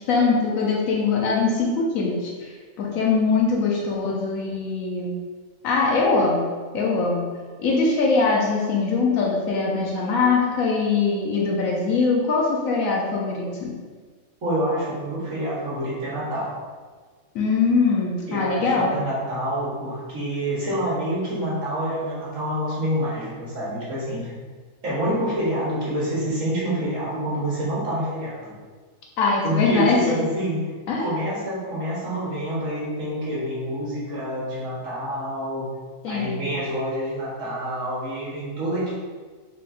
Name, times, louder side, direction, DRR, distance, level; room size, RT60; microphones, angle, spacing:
voice 1, 0.0-5.2 5.6-6.5 6.7-7.3 7.6-13.7 17.3-18.9 29.2-30.3 30.9-31.1 36.0-36.5, left 4 dB, 75° left, -2 dB, 1.1 m, -22 dB
voice 2, 14.4-16.5 18.3-24.3 24.8-28.5 29.4-30.7 31.0-35.7 36.1-38.9, equal, 70° right, -7 dB, 1.6 m, -27 dB
5.9 x 3.4 x 2.5 m, 1.5 s
omnidirectional pair, 1.4 m